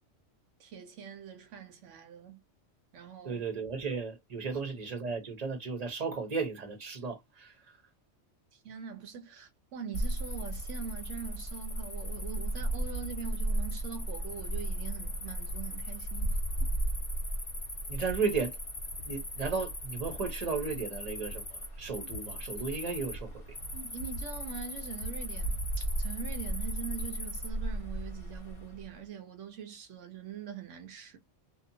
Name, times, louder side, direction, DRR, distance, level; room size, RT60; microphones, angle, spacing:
voice 1, 0.6-2.4 2.9-3.4 8.6-16.7 23.7-31.2, right 7 dB, 75° right, 1.0 m, -43 dB
voice 2, 3.2-7.5 17.9-18.6 19.1-21.4 21.8-23.4, right 5 dB, 35° right, 0.8 m, -34 dB
Cricket, 9.9-28.9, right 1 dB, 35° left, 0.9 m, -35 dB
2.7 x 2.1 x 2.7 m
omnidirectional pair, 1.3 m